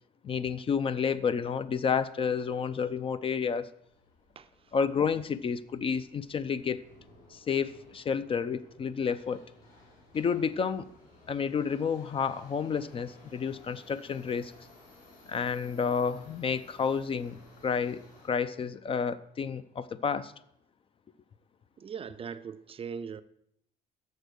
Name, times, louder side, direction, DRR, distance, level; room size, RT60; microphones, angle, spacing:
voice 1, 0.2-3.7 4.7-6.8 7.3-9.4 10.1-10.9 11.3-14.5 15.3-20.3, left 6 dB, 35° left, 0.4 m, -30 dB
Subway metro underground, 3.8-18.3, left 2 dB, 55° left, 3.9 m, -57 dB
voice 2, 4.4-4.7 21.8-23.2, right 6 dB, 35° right, 0.4 m, -40 dB
6.6 x 6.3 x 6.3 m
cardioid pair, 110°, 17 cm